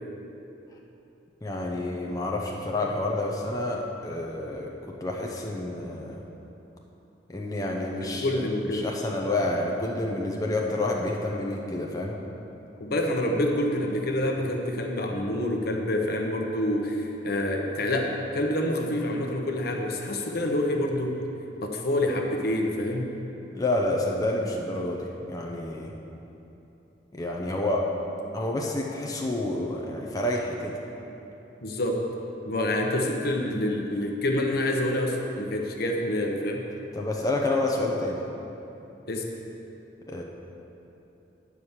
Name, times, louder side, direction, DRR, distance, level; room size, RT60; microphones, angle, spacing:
voice 1, 1.4-6.2 7.3-8.5 8.7-12.2 23.5-25.9 27.1-27.9 28.3-30.7 36.9-38.2 40.1-40.2, left 2 dB, 20° left, -1 dB, 0.7 m, -29 dB
voice 2, 8.0-8.9 12.8-21.2 21.6-23.1 31.6-32.0 32.5-36.6 39.1-39.2, left 1 dB, 60° left, 1 dB, 1.0 m, -27 dB
9.5 x 4.9 x 7.2 m, 3.0 s
head